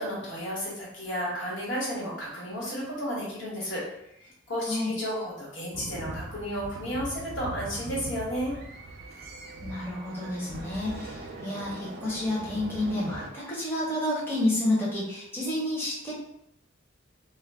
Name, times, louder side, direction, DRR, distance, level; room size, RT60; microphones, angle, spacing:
voice 1, 0.0-3.8 4.2-8.6, equal, 75° left, -6 dB, 1.1 m, -33 dB
sound 1, 5.7-13.3, right 2 dB, 55° right, 0.4 m, -41 dB
voice 2, 9.6-16.1, left 1 dB, 10° left, -6 dB, 0.5 m, -30 dB
2.2 x 2.0 x 3.4 m, 0.79 s
head